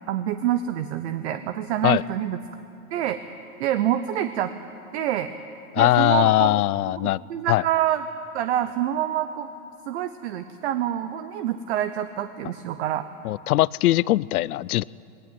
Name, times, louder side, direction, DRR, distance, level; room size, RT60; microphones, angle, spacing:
voice 1, 0.1-2.4 2.9-3.2 3.6-4.5 4.9-5.3 5.8-6.6 7.0-8.1 8.3-9.5 9.9-13.0, right 11 dB, 50° right, 11 dB, 0.9 m, -26 dB
voice 2, 5.7-7.2 7.5-7.6 13.2-14.8, left 15 dB, 80° left, 23 dB, 0.6 m, -20 dB
20.5 x 18.0 x 9.2 m, 2.8 s
hypercardioid pair, 155°, 43 cm